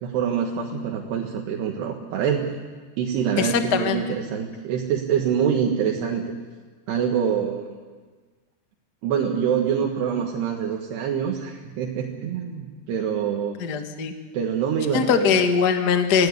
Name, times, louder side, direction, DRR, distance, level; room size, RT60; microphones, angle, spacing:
voice 1, 0.0-2.5 3.0-6.3 6.9-7.8 9.0-13.6 14.3-15.5, right 8 dB, 80° right, 0 dB, 3.7 m, -25 dB
voice 2, 3.4-4.0 13.6-14.1 14.9-16.3, left 6 dB, 65° left, 6 dB, 0.9 m, -21 dB
26.0 x 17.0 x 9.8 m, 1.4 s
omnidirectional pair, 4.8 m